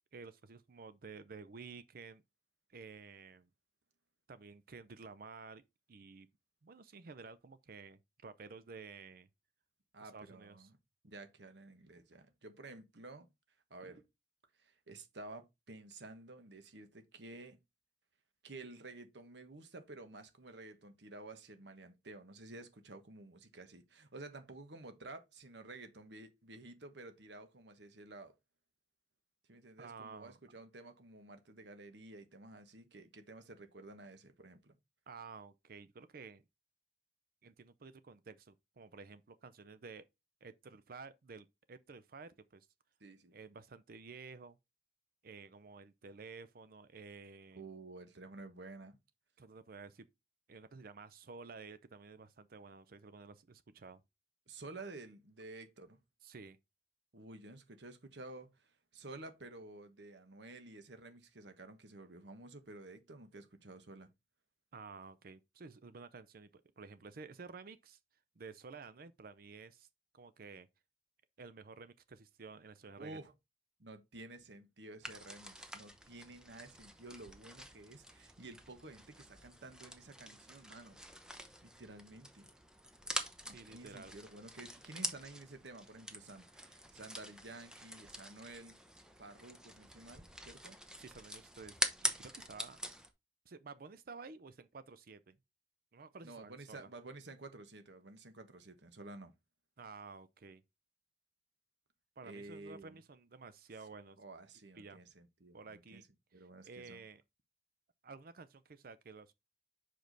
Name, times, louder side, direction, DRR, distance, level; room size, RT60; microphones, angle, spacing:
voice 1, 0.1-2.2 2.7-3.5 4.3-5.6 5.9-6.3 6.6-9.3 10.0-10.7 29.8-30.4 35.1-36.4 37.4-40.0 40.4-42.7 43.3-44.6 45.2-47.7 49.4-50.1 50.5-54.0 56.2-56.6 64.7-68.0 68.4-69.9 70.1-70.7 71.4-73.2 83.5-84.2 91.0-92.8 93.5-95.4 95.9-96.9 99.8-100.6 102.2-104.2 104.8-105.0 105.5-106.0 106.3-107.2 108.0-109.4, right 4 dB, 55° right, 0.5 m, -52 dB
voice 2, 9.9-10.8 11.0-13.3 13.7-14.1 14.6-17.6 18.4-28.3 29.5-34.8 43.0-43.4 47.5-49.0 54.5-56.0 57.1-64.1 73.0-73.3 73.8-81.0 81.6-82.5 83.4-88.8 89.2-90.8 96.2-99.3 102.2-103.0 104.2-106.1 106.3-107.0, right 2 dB, 70° right, 1.2 m, -52 dB
sound 1, 75.0-93.1, right 1 dB, 5° right, 0.8 m, -45 dB
5.9 x 5.2 x 3.9 m
head